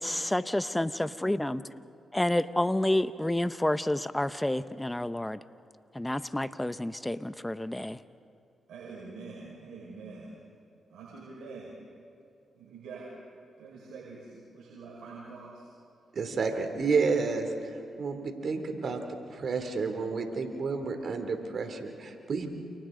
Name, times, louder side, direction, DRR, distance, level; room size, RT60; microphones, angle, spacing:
voice 1, 0.0-1.6 2.1-5.4 5.9-8.0, left 1 dB, 10° left, 13 dB, 0.9 m, -29 dB
voice 2, 8.7-10.4 10.9-11.7 12.5-13.1 13.6-15.7, right 4 dB, 85° right, -6 dB, 5.3 m, -45 dB
voice 3, 16.1-17.5 18.0-19.0 19.3-22.5, right 4 dB, 60° right, 5 dB, 3.0 m, -30 dB
29.5 x 29.0 x 3.9 m, 2.4 s
cardioid pair, 60°, 0 cm